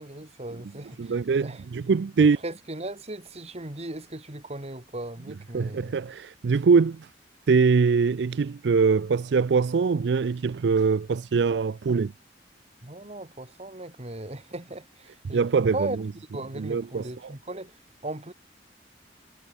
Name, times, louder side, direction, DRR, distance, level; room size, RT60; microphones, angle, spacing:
voice 1, 0.0-1.2 1.4-1.6 2.2-5.9 12.8-15.4 15.7-16.0 16.3-17.7 18.0-18.3, right 2 dB, 40° right, 2.6 m, -37 dB
voice 2, 1.0-2.4 5.5-7.1 7.5-12.1 15.3-15.9 16.6-17.3, right 5 dB, 75° right, 0.4 m, -23 dB
head